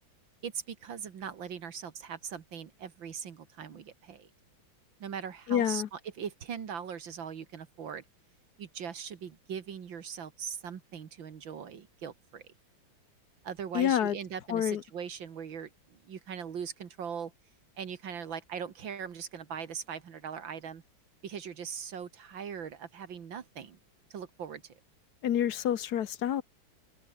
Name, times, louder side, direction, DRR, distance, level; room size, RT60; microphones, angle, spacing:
voice 1, 0.4-4.3 5.0-8.0 8.6-12.4 13.4-17.3 17.8-20.8 21.2-23.8 24.1-24.7, right 7 dB, 70° right, 2.4 m, -40 dB
voice 2, 5.5-5.9 13.7-14.2 14.5-14.8 25.2-26.4, left 10 dB, 60° left, 1.3 m, -28 dB
open air
omnidirectional pair, 2.2 m